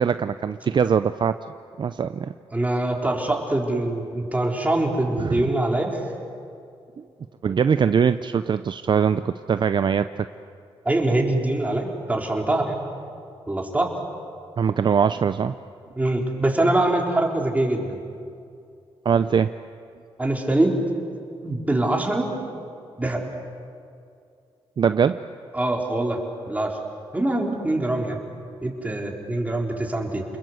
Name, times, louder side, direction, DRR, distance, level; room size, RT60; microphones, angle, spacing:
voice 1, 0.0-1.4 1.8-2.3 5.2-5.5 7.0-7.1 7.4-10.3 14.6-15.6 19.0-19.5 24.8-25.2, right 7 dB, 50° right, 11 dB, 0.6 m, -22 dB
voice 2, 2.5-6.0 10.8-12.8 13.5-13.9 16.0-18.0 20.2-20.7 21.4-22.3 23.0-23.2 25.5-26.2 26.5-26.8 27.1-28.2 28.6-30.2, right 1 dB, 15° right, 0 dB, 4.0 m, -23 dB
29.5 x 21.0 x 8.1 m, 2.4 s
cardioid pair, 95°, 10 cm